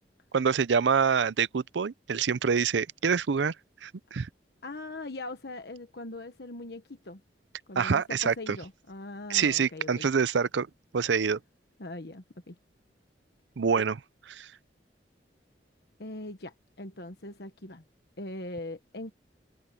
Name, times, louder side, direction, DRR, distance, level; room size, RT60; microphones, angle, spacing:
voice 1, 0.3-3.5 3.8-4.3 7.8-8.3 9.3-10.7 10.9-11.4 13.6-14.0 14.3-14.5, right 6 dB, 85° right, 0.5 m, -26 dB
voice 2, 4.6-7.2 7.7-10.1 11.8-12.5 16.0-17.8 18.2-19.1, left 2 dB, 65° left, 1.3 m, -41 dB
head